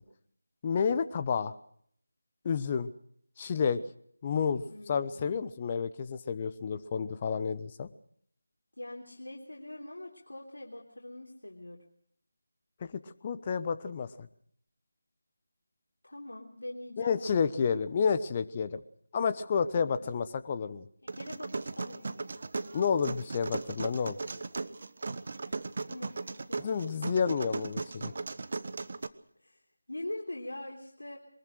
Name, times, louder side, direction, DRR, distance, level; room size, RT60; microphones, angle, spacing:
voice 1, 0.6-1.5 2.4-2.9 3.4-3.8 4.2-7.9 12.9-14.3 17.0-18.8 19.1-20.9 22.7-24.2 26.6-28.1, left 6 dB, 25° left, 11 dB, 1.0 m, -30 dB
voice 2, 4.7-5.3 8.8-11.8 16.0-17.5 19.7-20.1 21.1-22.3 25.4-26.7 29.4-29.6 29.9-31.2, left 1 dB, 70° left, -1 dB, 3.4 m, -43 dB
sound 1, 21.1-29.1, right 3 dB, 45° right, 1.1 m, -37 dB
23.0 x 21.0 x 6.3 m, 0.65 s
figure-of-eight pair, 160°, 0 cm